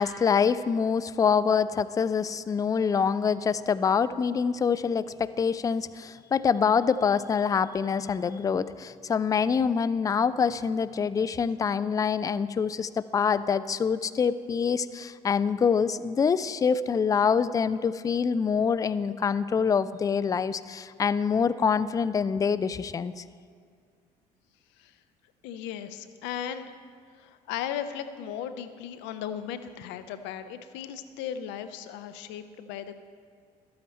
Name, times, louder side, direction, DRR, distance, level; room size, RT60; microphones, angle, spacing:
voice 1, 0.0-23.2, left 6 dB, 15° left, 15 dB, 0.3 m, -25 dB
voice 2, 25.4-26.7 27.2-33.0, left 9 dB, 60° left, 10 dB, 0.6 m, -36 dB
12.5 x 8.6 x 4.2 m, 2.1 s
hypercardioid pair, 55°, 21 cm